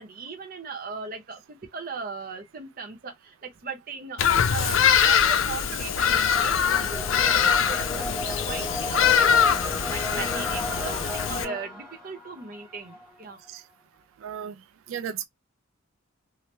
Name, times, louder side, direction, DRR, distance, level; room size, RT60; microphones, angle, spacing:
voice 1, 0.0-13.5, right 4 dB, 45° right, 0.8 m, -38 dB
Bird vocalization bird call bird song, 4.2-11.4, left 7 dB, 70° left, 0.5 m, -23 dB
sound 1, 5.5-13.2, left 1 dB, 5° right, 1.4 m, -35 dB
voice 2, 14.2-14.6 14.9-15.3, right 8 dB, 75° right, 0.3 m, -34 dB
3.0 x 2.1 x 3.2 m
head